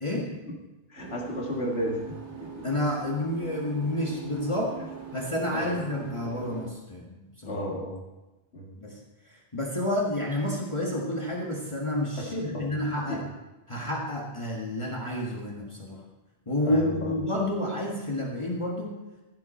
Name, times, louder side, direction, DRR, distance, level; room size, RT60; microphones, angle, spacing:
voice 1, 0.9-2.0 2.4-2.7 5.5-5.7 7.5-8.0 8.5-8.7 12.2-12.7 13.1-13.2 16.7-17.1, equal, 65° left, -1 dB, 2.2 m, -33 dB
sound 1, 1.0-6.7, right 6 dB, 90° right, 1.8 m, -42 dB
voice 2, 2.6-4.8 5.1-7.6 8.8-13.3 13.7-16.0 16.5-19.0, left 1 dB, 25° left, -4 dB, 1.8 m, -30 dB
15.0 x 8.0 x 4.5 m, 1.1 s
omnidirectional pair, 1.1 m